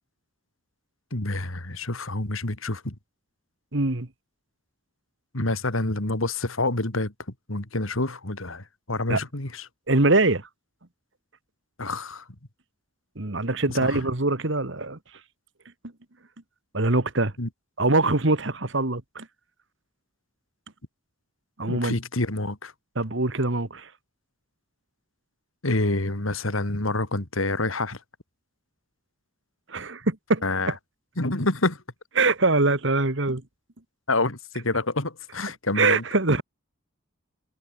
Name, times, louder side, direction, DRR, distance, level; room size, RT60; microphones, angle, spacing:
voice 1, 1.1-2.9 5.3-7.1 7.5-9.7 11.8-12.2 13.7-14.1 17.4-17.5 21.7-22.7 25.6-28.0 30.4-30.7 31.2-31.8 34.1-36.0, left 2 dB, 75° left, 2.9 m, -27 dB
voice 2, 3.7-4.1 9.1-9.2 9.9-10.5 13.2-15.0 16.7-17.3 17.8-19.3 21.6-22.0 23.0-23.9 29.7-30.4 32.2-33.4 35.8-36.4, right 2 dB, 60° right, 1.8 m, -23 dB
head